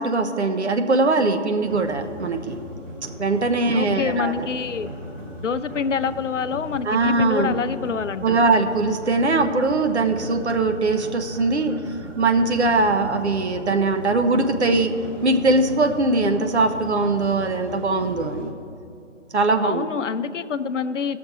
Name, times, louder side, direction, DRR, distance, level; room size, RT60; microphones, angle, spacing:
voice 1, 0.0-2.6 3.2-4.5 6.9-7.6 8.2-11.8 12.2-14.9 15.2-18.5 19.3-19.9, right 3 dB, 60° right, 7 dB, 1.0 m, -21 dB
sound 1, 1.6-18.5, equal, 80° right, 2.2 m, -37 dB
voice 2, 3.7-4.9 5.4-8.5 19.6-21.2, left 6 dB, 70° left, 12 dB, 0.6 m, -26 dB
17.5 x 6.6 x 4.3 m, 2.5 s
figure-of-eight pair, 155°, 38 cm